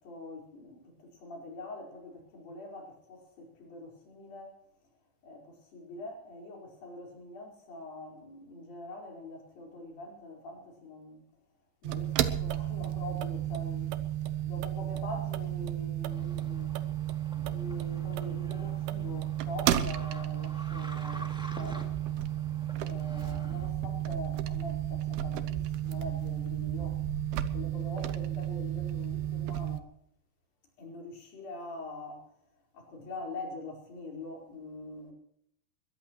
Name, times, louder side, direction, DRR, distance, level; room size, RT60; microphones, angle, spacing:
voice 1, 0.0-4.5 5.2-11.2 11.8-13.9 14.4-16.7 17.3-21.9 22.8-27.0 27.5-29.9 30.8-32.3 32.7-35.1, left 2 dB, 60° left, 6.3 m, -44 dB
sound 1, 11.8-29.8, right 12 dB, 80° right, 2.8 m, -33 dB
sound 2, 16.1-23.7, equal, ahead, 1.6 m, -48 dB
22.0 x 17.5 x 3.1 m
omnidirectional pair, 4.5 m